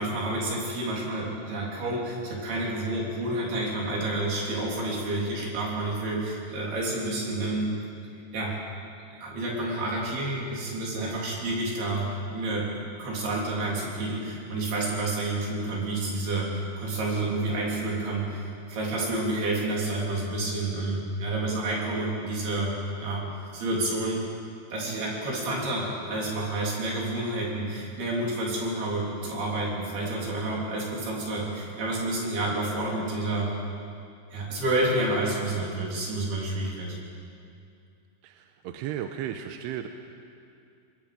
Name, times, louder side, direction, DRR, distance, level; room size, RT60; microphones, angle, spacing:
voice 1, 0.0-7.7 8.3-8.6 9.2-12.7 13.0-22.7 23.0-23.2 23.5-24.2 24.7-33.5 34.3-37.0, right 2 dB, 65° right, -3 dB, 5.5 m, -29 dB
voice 2, 38.2-39.9, right 10 dB, 85° right, 6 dB, 2.8 m, -35 dB
25.0 x 21.0 x 5.1 m, 2.4 s
omnidirectional pair, 4.8 m